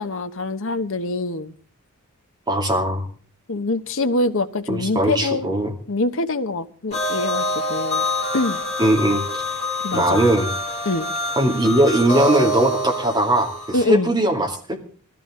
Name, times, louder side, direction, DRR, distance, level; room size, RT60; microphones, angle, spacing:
voice 1, 0.0-1.5 3.5-5.5 5.9-8.0 8.3-8.6 9.8-10.2 10.8-11.1 13.7-14.1, left 2 dB, 60° left, 10 dB, 1.0 m, -24 dB
voice 2, 2.5-3.1 4.7-5.7 8.8-9.2 9.9-10.5 11.4-14.8, right 1 dB, 20° right, 1 dB, 2.5 m, -19 dB
sound 1, 6.9-13.8, left 1 dB, 30° left, 4.3 m, -26 dB
19.5 x 14.0 x 3.8 m, 0.42 s
head